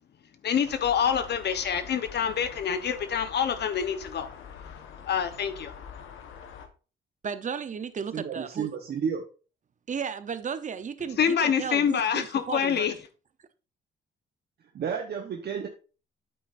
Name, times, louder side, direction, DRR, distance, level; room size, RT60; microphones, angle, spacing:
voice 1, 0.4-4.3 5.1-5.7 11.2-12.9, left 8 dB, 60° left, 1.0 m, -26 dB
sound 1, 0.6-6.7, left 7 dB, 85° left, 1.2 m, -45 dB
voice 2, 7.2-8.7 9.9-12.9, right 6 dB, 40° right, 0.8 m, -34 dB
voice 3, 8.1-9.2 14.7-15.7, right 7 dB, 55° right, 1.0 m, -31 dB
8.6 x 7.9 x 2.6 m
cardioid pair, 90°, 20 cm